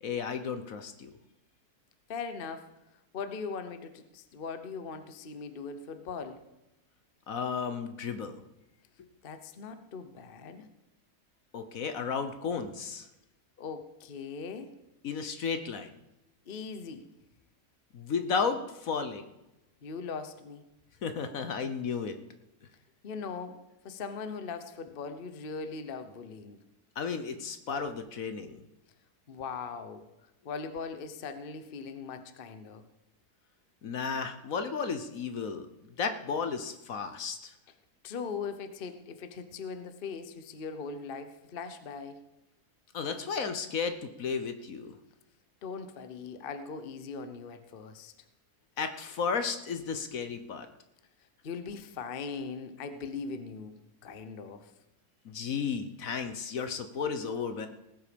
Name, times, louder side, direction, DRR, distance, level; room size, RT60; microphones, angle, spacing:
voice 1, 0.0-1.1 7.3-8.4 11.5-13.1 15.0-15.9 17.9-19.3 21.0-22.2 27.0-28.6 33.8-35.7 36.0-37.5 42.9-44.9 48.8-50.7 55.2-57.7, left 5 dB, 60° left, 9 dB, 1.3 m, -33 dB
voice 2, 2.1-2.7 3.1-6.4 9.2-10.7 13.6-14.7 16.5-17.1 19.8-20.6 23.0-23.6 23.8-26.6 29.3-30.0 30.4-32.8 38.0-42.2 45.6-48.1 51.4-53.8 54.0-54.7, left 5 dB, 40° left, 10 dB, 0.9 m, -40 dB
18.5 x 8.0 x 5.2 m, 0.94 s
omnidirectional pair, 1.7 m